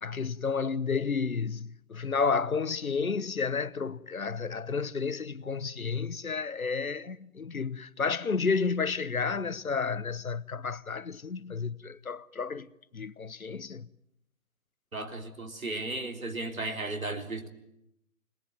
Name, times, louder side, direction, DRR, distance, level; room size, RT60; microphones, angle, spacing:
voice 1, 0.0-12.7 12.9-13.9, left 5 dB, 70° left, 1.0 m, -31 dB
voice 2, 14.9-17.5, right 2 dB, 65° right, 3.7 m, -35 dB
26.0 x 20.0 x 9.2 m
figure-of-eight pair, 155°, 43 cm